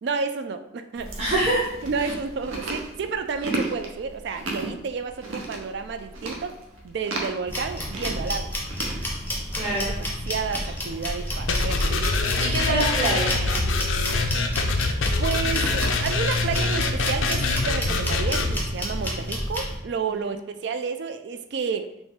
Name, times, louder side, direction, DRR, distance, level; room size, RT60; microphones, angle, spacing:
voice 1, 0.0-1.1 1.8-6.6 6.8-8.5 9.7-12.1 15.1-21.9, right 5 dB, 55° right, 9 dB, 0.3 m, -31 dB
Chewing mastication, 1.0-19.9, right 2 dB, 75° right, 0.7 m, -37 dB
voice 2, 1.2-1.6 9.0-9.2 9.5-9.9 12.4-13.7 20.1-20.3, right 1 dB, 30° right, -9 dB, 1.0 m, -25 dB
sound 1, 7.5-19.8, left 1 dB, 10° left, 0.5 m, -31 dB
sound 2, 11.5-18.5, left 3 dB, 75° left, 0.4 m, -24 dB
4.0 x 2.5 x 3.5 m, 0.81 s
head